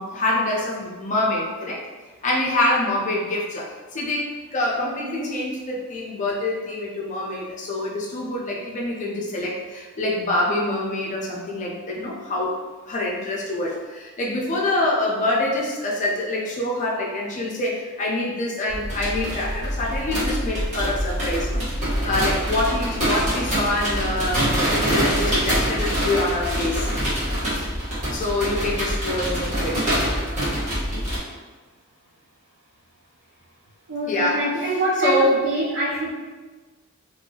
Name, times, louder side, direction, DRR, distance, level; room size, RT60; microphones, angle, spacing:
voice 1, 0.0-1.8 2.2-12.5 12.9-21.6 22.0-26.9 27.5-27.7 28.1-29.9 34.1-34.4 35.0-35.4, left 1 dB, 35° left, -3 dB, 0.5 m, -25 dB
sound 1, 18.7-31.2, equal, 35° right, 1.1 m, -25 dB
voice 2, 33.9-36.1, right 1 dB, 60° right, -6 dB, 0.5 m, -25 dB
3.0 x 2.7 x 2.7 m, 1.3 s
head